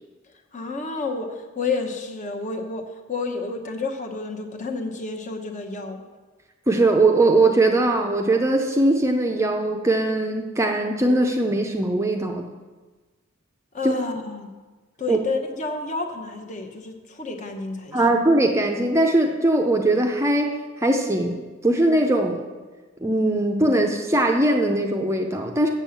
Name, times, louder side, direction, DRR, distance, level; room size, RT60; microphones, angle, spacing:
voice 1, 0.5-6.0 13.7-14.5 15.0-18.0, left 3 dB, 35° left, 3 dB, 1.0 m, -30 dB
voice 2, 6.7-12.5 13.8-13.9 15.1-15.2 17.9-22.4 23.0-25.7, right 2 dB, 15° right, 3 dB, 0.6 m, -20 dB
7.5 x 7.2 x 7.1 m, 1.3 s
head